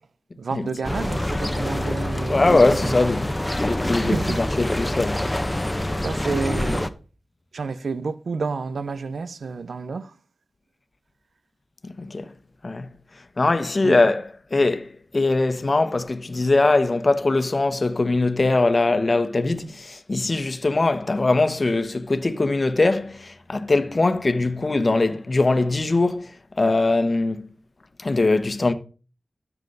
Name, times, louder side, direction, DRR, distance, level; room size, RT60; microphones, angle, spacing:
voice 1, 0.4-3.0 4.0-4.4 6.0-6.9 7.5-10.1 13.8-14.0 19.6-19.7, right 4 dB, 80° right, 0.6 m, -29 dB
sound 1, 0.8-6.9, left 1 dB, 15° left, 0.9 m, -26 dB
voice 2, 2.3-3.3 3.6-5.3 12.0-12.3 12.6-12.9 13.4-14.2 14.5-14.9 15.1-26.3 26.6-27.5 28.0-28.7, left 2 dB, 45° left, 1.1 m, -21 dB
13.0 x 7.1 x 4.0 m
cardioid pair, 50°, 0 cm